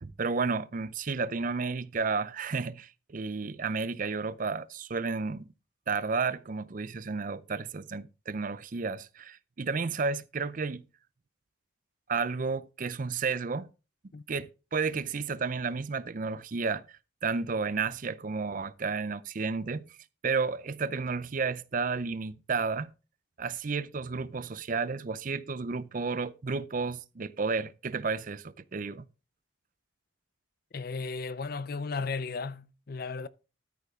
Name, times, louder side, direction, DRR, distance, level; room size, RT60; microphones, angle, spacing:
voice 1, 0.0-5.5 5.9-10.9 12.1-13.7 14.3-19.9 20.2-22.9 23.4-29.1, right 4 dB, 40° right, 0.5 m, -32 dB
voice 2, 30.7-33.3, left 4 dB, 50° left, 0.5 m, -35 dB
13.0 x 6.7 x 3.6 m
head